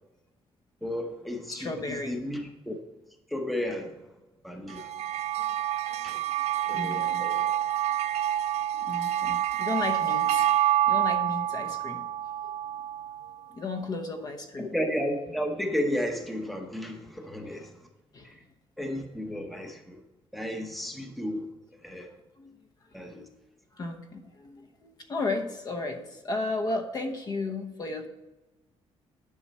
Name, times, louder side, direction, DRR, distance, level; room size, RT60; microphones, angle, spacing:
voice 1, 0.8-1.7 2.0-2.8 3.3-4.0 4.4-4.9 6.0-6.2 6.6-7.5 14.6-17.7 18.2-18.4 18.8-20.0 20.3-21.5 21.8-22.1 22.9-23.2, left 1 dB, ahead, 4 dB, 0.9 m, -33 dB
voice 2, 1.5-2.2 5.4-5.5 5.8-7.3 8.8-10.5 10.9-12.0 12.7-12.8 13.5-14.7 17.4-17.7 18.1-18.3 22.4-22.6 23.0-23.4 23.7-28.1, left 2 dB, 35° left, 6 dB, 1.0 m, -34 dB
sound 1, 4.7-13.3, right 12 dB, 90° right, 0.4 m, -27 dB
10.5 x 6.2 x 4.3 m, 1.1 s
cardioid pair, 150°, 11 cm